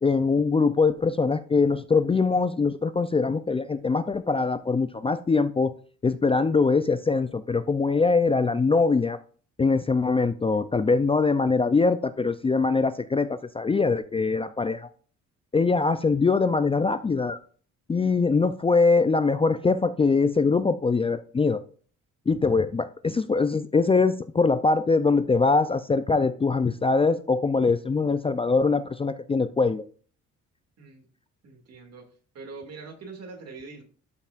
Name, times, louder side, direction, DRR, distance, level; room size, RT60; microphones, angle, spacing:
voice 1, 0.0-5.7 6.0-9.2 9.6-14.9 15.5-17.4 17.9-21.6 22.3-29.8, left 4 dB, 20° left, 12 dB, 0.4 m, -23 dB
voice 2, 31.4-32.1 32.3-33.8, right 4 dB, 55° right, 4 dB, 2.3 m, -43 dB
12.0 x 5.5 x 2.5 m, 0.42 s
cardioid pair, 90°, 30 cm